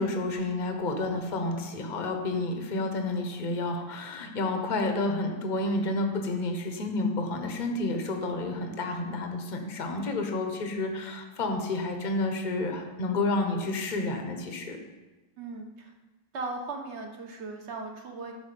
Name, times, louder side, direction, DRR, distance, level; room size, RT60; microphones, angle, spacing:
voice 1, 0.0-14.8, left 2 dB, 30° left, 4 dB, 1.0 m, -30 dB
voice 2, 15.4-15.9 16.3-18.3, right 3 dB, 40° right, 3 dB, 1.3 m, -37 dB
11.5 x 4.8 x 6.9 m, 1.2 s
omnidirectional pair, 1.9 m